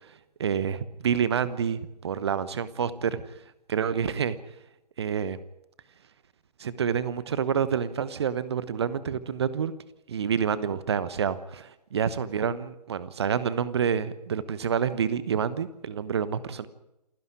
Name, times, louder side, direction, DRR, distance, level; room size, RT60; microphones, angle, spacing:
voice 1, 0.4-3.2 3.7-4.4 5.0-5.4 6.6-9.7 10.1-16.7, right 7 dB, 40° right, 16 dB, 1.1 m, -28 dB
28.0 x 11.0 x 9.9 m, 0.88 s
figure-of-eight pair, 135°, 21 cm